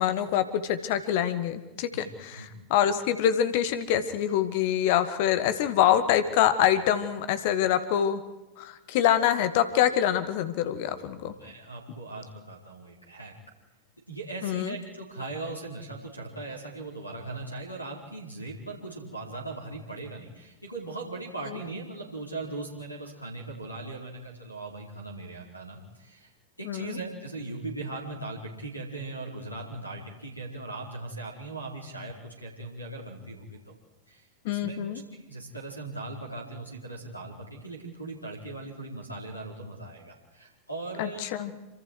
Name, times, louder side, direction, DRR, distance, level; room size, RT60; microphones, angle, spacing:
voice 1, 0.0-8.2 8.6-11.3 14.4-14.8 26.6-27.0 34.4-35.0 41.0-41.5, left 10 dB, 50° left, 11 dB, 2.0 m, -25 dB
voice 2, 11.4-13.3 14.1-26.3 26.6-33.6 34.1-34.8 35.1-41.4, right 2 dB, 85° left, 2 dB, 4.6 m, -39 dB
28.0 x 26.0 x 4.8 m, 1.0 s
figure-of-eight pair, 90°, 0 cm